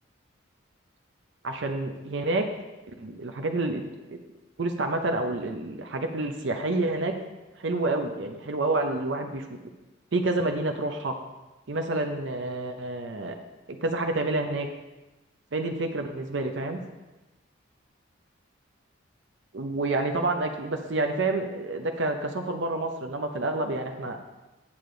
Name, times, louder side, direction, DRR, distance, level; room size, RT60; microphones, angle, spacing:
voice 1, 1.4-2.5 3.0-3.8 4.1-4.2 4.6-7.1 7.6-9.5 10.1-11.1 11.7-13.4 13.7-14.7 15.5-16.8 19.5-24.2, right 2 dB, 70° right, 4 dB, 0.6 m, -28 dB
8.6 x 6.7 x 3.8 m, 1.1 s
head